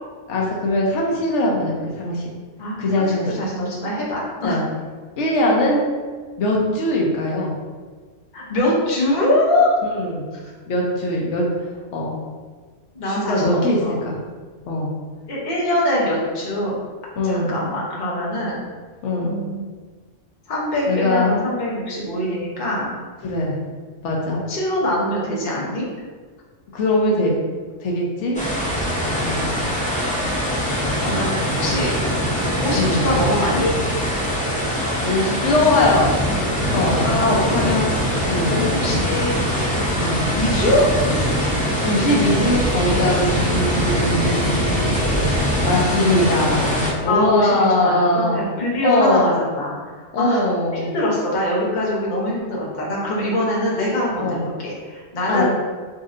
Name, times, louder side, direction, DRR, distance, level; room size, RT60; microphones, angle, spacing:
voice 1, 0.3-2.2 2.8-3.3 4.4-4.6 5.2-5.9 6.4-7.5 9.8-10.2 10.7-11.4 11.9-12.2 13.1-14.2 14.6-14.9 17.2-17.6 19.0-19.4 20.9-21.3 23.2-23.6 24.0-24.4 26.7-27.3 27.8-28.4 29.2-29.5 32.7-33.0 35.0-36.1 36.7-37.4 38.3-38.6 40.0-40.3 41.8-45.3 45.6-48.4 48.8-49.3 50.1-50.9 54.2-54.5 55.3-55.4, left 1 dB, 70° left, -2 dB, 1.0 m, -21 dB
voice 2, 2.6-4.6 8.3-9.7 10.3-10.4 12.9-14.0 15.3-16.8 17.2-18.6 19.2-19.6 20.5-22.9 24.5-25.8 31.0-31.3 31.6-31.9 32.5-33.7 37.0-38.0 38.5-39.3 40.3-40.9 47.0-49.7 50.0-50.4 50.7-55.4, left 1 dB, 40° left, -5 dB, 0.9 m, -23 dB
sound 1, 28.3-46.9, equal, 10° left, 0.3 m, -22 dB
4.1 x 2.6 x 2.5 m, 1.5 s
omnidirectional pair, 1.3 m